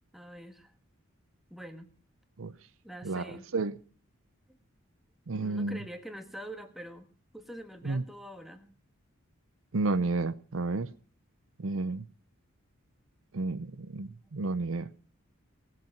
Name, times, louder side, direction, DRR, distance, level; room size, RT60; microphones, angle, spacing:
voice 1, 0.1-0.7 1.5-1.9 2.8-3.5 4.5-4.6 5.4-7.1 7.3-8.7 14.3-14.4, equal, ahead, 1.4 m, -45 dB
voice 2, 5.3-5.8 7.9-8.0 9.7-10.9 11.6-12.0 13.3-14.9, right 3 dB, 65° right, 0.6 m, -31 dB
18.5 x 7.4 x 5.8 m
head